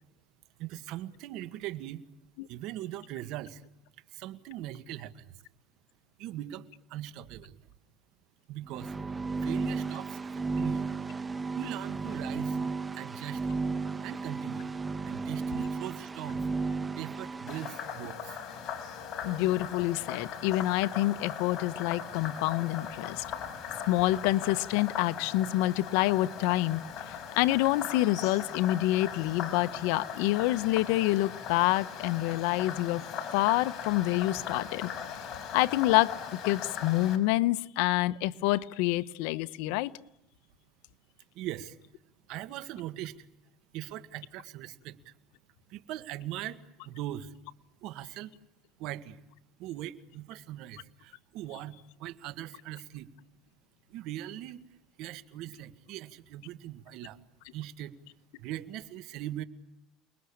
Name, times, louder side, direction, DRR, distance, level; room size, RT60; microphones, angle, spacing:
voice 1, 0.6-2.0 2.5-3.6 4.1-5.4 6.2-7.6 8.5-9.0 9.4-10.9 11.6-12.6 12.9-13.5 14.0-14.7 15.1-16.5 17.0-18.4 41.3-41.8 42.3-43.3 43.7-45.1 45.7-47.3 47.8-48.3 48.8-49.2 49.6-53.1 53.9-54.6 55.0-57.2 57.5-58.0 58.4-59.4, right 13 dB, 65° right, 12 dB, 1.8 m, -40 dB
sound 1, 8.7-17.8, right 4 dB, 20° right, 1.1 m, -34 dB
Frog, 17.5-37.2, left 7 dB, 45° left, 5.0 m, -39 dB
voice 2, 19.2-23.2 23.9-26.8 27.1-33.0 33.3-34.9 35.5-36.1 36.4-39.9, left 17 dB, 80° left, 13 dB, 1.0 m, -27 dB
29.0 x 21.0 x 8.7 m, 0.85 s
cardioid pair, 125°, 0 cm